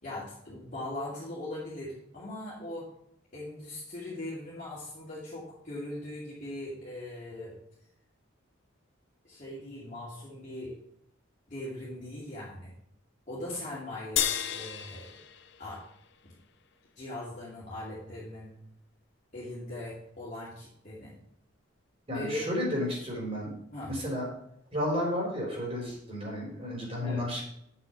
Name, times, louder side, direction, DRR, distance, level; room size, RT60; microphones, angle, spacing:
voice 1, 0.0-2.9 3.3-7.5 9.2-10.7 11.5-12.7 13.3-15.1 15.6-15.8 16.2-16.3 17.0-18.5 19.3-21.1 22.1-22.5 23.7-23.9 27.0-27.2, left 1 dB, 35° left, -9 dB, 2.5 m, -40 dB
sound 1, 14.2-16.7, left 10 dB, 55° left, 0.7 m, -33 dB
voice 2, 22.1-23.5 23.9-24.3 24.7-27.4, left 1 dB, 30° right, -3 dB, 3.9 m, -32 dB
7.8 x 6.3 x 5.9 m, 0.72 s
head